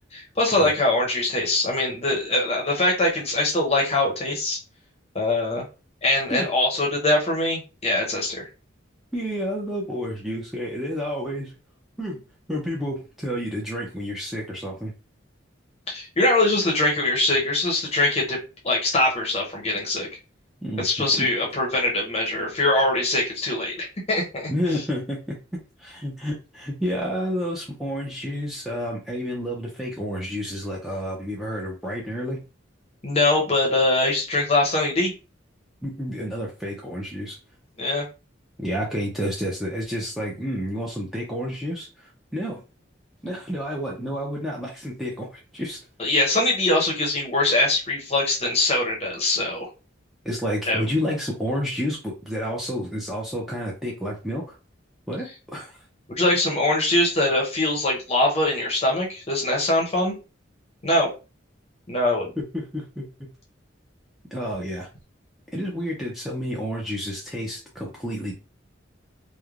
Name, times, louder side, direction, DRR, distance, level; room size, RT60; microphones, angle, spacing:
voice 1, 0.1-4.6 5.1-5.7 6.0-8.5 15.9-18.4 18.6-20.1 20.8-24.8 33.0-35.1 37.8-38.0 46.0-49.7 50.7-50.8 56.1-60.2 60.8-61.1 61.9-62.3, left 2 dB, 30° left, -1 dB, 0.7 m, -22 dB
voice 2, 9.1-11.5 12.0-12.2 12.5-14.9 20.6-20.9 21.1-21.3 24.5-25.4 25.8-32.4 35.8-37.4 38.6-42.6 43.2-45.8 50.2-54.6 55.1-55.8 62.4-63.1 64.3-64.9 65.5-68.3, equal, ahead, -4 dB, 0.5 m, -30 dB
3.1 x 2.1 x 2.4 m, 0.31 s
head